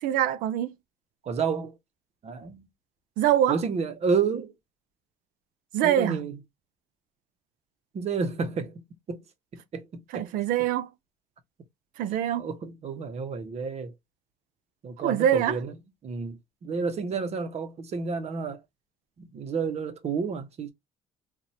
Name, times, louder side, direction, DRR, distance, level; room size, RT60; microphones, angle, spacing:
voice 1, 0.0-0.7 3.2-3.6 5.7-6.2 10.1-10.9 12.0-12.5 15.0-15.6, right 11 dB, 90° right, 0.6 m, -24 dB
voice 2, 1.2-1.7 2.2-2.7 3.5-4.5 5.8-6.4 7.9-8.8 9.1-9.2 9.5-10.3 12.4-13.9 14.8-15.8 16.0-18.6 19.2-20.7, right 5 dB, 50° right, 1.1 m, -30 dB
4.1 x 2.6 x 3.0 m
cardioid pair, 100°, 14 cm